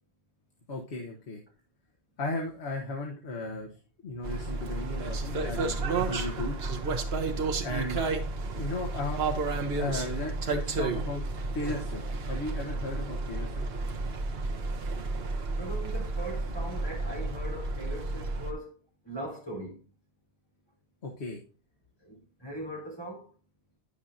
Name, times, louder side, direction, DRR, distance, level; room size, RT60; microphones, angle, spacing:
voice 1, 0.7-1.4 2.2-3.7 4.0-6.5 6.9-7.1 7.6-8.0 8.6-9.2 9.7-11.3 11.5-13.8 21.0-21.4, left 2 dB, 75° left, 1.5 m, -35 dB
sound 1, 4.2-18.5, right 3 dB, 65° right, 1.2 m, -32 dB
voice 2, 15.6-18.8 19.0-19.9 22.0-23.3, right 1 dB, 20° left, 4.0 m, -40 dB
9.9 x 6.7 x 2.6 m
omnidirectional pair, 1.1 m